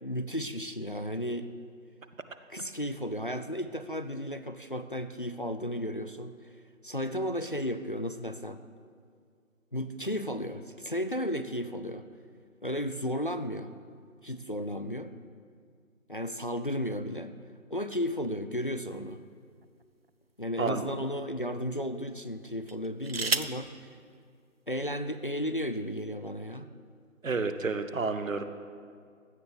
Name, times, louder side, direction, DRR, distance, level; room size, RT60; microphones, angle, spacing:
voice 1, 0.0-1.5 2.5-6.3 6.8-8.6 9.7-12.0 12.6-13.7 14.2-15.1 16.1-17.4 17.7-19.2 20.4-23.9 24.7-26.7, equal, 40° left, 10 dB, 0.4 m, -34 dB
sound 1, 18.9-20.1 20.8-21.0 22.6-23.7 24.8-24.9 25.2-25.6, right 4 dB, 45° right, 0.5 m, -34 dB
voice 2, 27.2-28.5, right 4 dB, 65° right, 9 dB, 1.1 m, -30 dB
16.0 x 12.0 x 4.0 m, 2.2 s
figure-of-eight pair, 155°, 42 cm